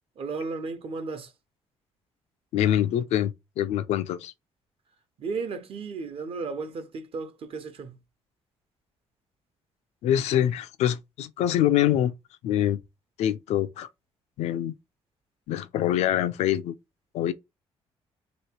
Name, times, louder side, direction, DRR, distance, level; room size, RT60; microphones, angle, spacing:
voice 1, 0.2-1.3 5.2-7.9, right 4 dB, 55° right, 1.0 m, -34 dB
voice 2, 2.5-4.3 10.0-12.1 12.4-12.8 13.2-13.9 14.4-14.7 15.5-16.7 17.1-17.3, left 11 dB, 90° left, 0.5 m, -25 dB
3.1 x 3.0 x 4.5 m
cardioid pair, 100°, 11 cm